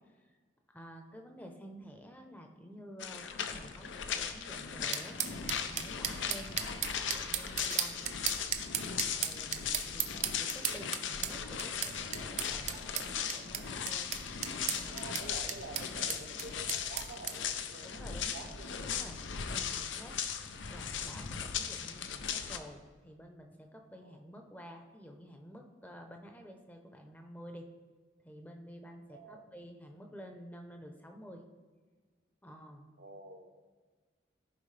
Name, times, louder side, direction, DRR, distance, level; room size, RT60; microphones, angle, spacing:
voice 1, 0.7-5.2 5.7-8.0 9.1-10.1 10.4-12.8 13.1-14.1 14.4-14.9 15.4-15.6 16.0-16.2 17.8-20.2 20.7-27.7 28.2-31.4 32.4-32.9, equal, 10° left, 3 dB, 0.7 m, -51 dB
sound 1, 3.0-22.6, left 7 dB, 85° left, 0.6 m, -38 dB
sound 2, 4.9-17.4, right 9 dB, 35° right, 0.5 m, -36 dB
voice 2, 6.5-6.9 10.7-10.9 14.9-18.8 24.0-24.3 29.1-29.5 33.0-33.6, right 3 dB, 65° right, 5 dB, 0.8 m, -49 dB
14.5 x 4.9 x 3.3 m, 1.4 s
head